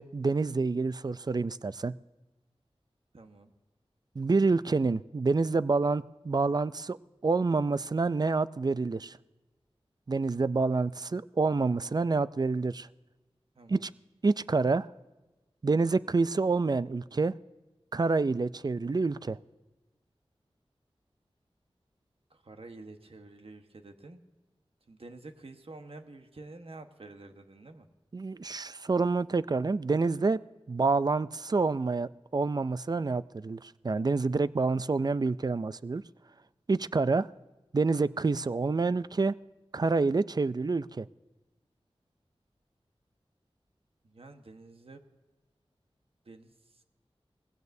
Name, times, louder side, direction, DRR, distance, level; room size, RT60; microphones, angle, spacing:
voice 1, 0.0-1.9 4.2-7.0 7.2-9.2 10.1-12.9 13.7-13.9 14.2-14.9 15.6-17.3 17.9-19.4 28.1-30.4 30.7-36.0 36.7-37.3 37.7-39.4 39.7-41.1, right 3 dB, 40° right, 16 dB, 0.4 m, -27 dB
voice 2, 3.1-3.5 13.5-13.9 22.3-24.3 24.9-27.9 44.0-45.0 46.2-46.8, right 2 dB, 65° right, 6 dB, 1.3 m, -49 dB
19.5 x 16.0 x 2.7 m, 1.1 s
wide cardioid pair, 50°, 10 cm